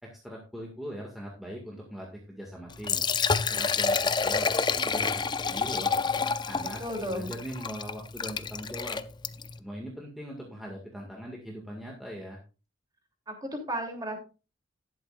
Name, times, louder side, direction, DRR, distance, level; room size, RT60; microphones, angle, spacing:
voice 1, 0.0-3.0 3.5-6.0 6.5-9.0 9.6-12.4, equal, ahead, -2 dB, 2.0 m, -41 dB
Liquid, 2.7-9.6, left 5 dB, 20° left, 0.4 m, -29 dB
voice 2, 6.8-7.3 13.3-14.2, equal, 20° right, 2 dB, 3.1 m, -33 dB
13.0 x 11.0 x 2.5 m, 0.32 s
head